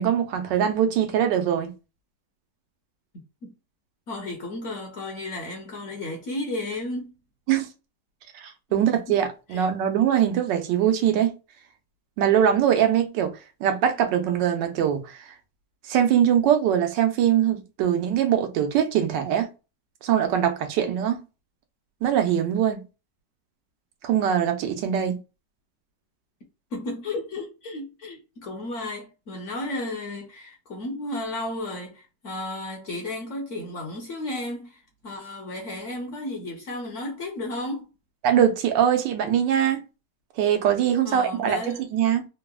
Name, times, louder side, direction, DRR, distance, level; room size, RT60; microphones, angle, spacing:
voice 1, 0.0-1.7 7.5-7.7 8.3-11.3 12.2-15.2 15.8-19.5 20.0-21.2 22.0-22.8 24.0-25.2 38.2-39.8 40.4-42.3, right 9 dB, 90° right, 1.3 m, -22 dB
voice 2, 4.1-7.2 9.5-9.7 25.1-25.2 26.7-37.9 41.0-41.9, left 2 dB, 60° left, 0.9 m, -33 dB
3.7 x 2.0 x 2.2 m
omnidirectional pair, 1.9 m